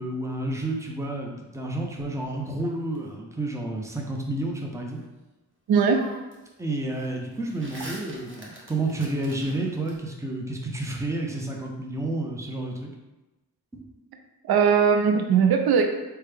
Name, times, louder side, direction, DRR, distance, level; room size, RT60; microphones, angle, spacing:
voice 1, 0.0-5.0 6.6-12.9 13.7-13.8, right 2 dB, 5° right, 0 dB, 0.6 m, -30 dB
sound 1, 1.7-3.0 5.2-5.3 5.7-6.5 6.8-10.0, right 1 dB, 30° right, 0.9 m, -45 dB
voice 2, 5.7-6.1 14.4-15.9, right 6 dB, 65° right, 5 dB, 0.5 m, -19 dB
3.1 x 2.2 x 3.3 m, 1.0 s
cardioid pair, 50°, 41 cm